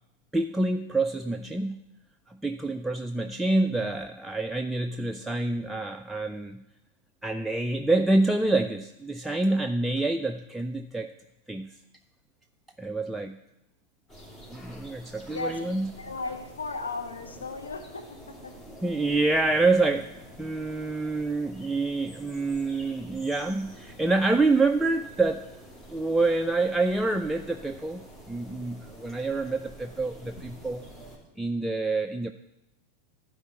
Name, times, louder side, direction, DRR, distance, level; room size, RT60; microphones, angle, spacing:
voice 1, 0.3-1.8 2.3-6.6 7.2-11.1 11.5-11.7 12.8-13.4 14.5-15.9 18.8-20.1 20.4-25.4 25.9-28.0 28.3-30.8 31.4-32.3, right 2 dB, 5° right, 5 dB, 0.4 m, -27 dB
sound 1, 14.1-31.2, equal, 20° left, 2.9 m, -48 dB
voice 2, 15.3-18.7, left 3 dB, 75° left, 5 dB, 1.1 m, -36 dB
11.5 x 4.7 x 8.0 m, 0.89 s
figure-of-eight pair, 90°, 0 cm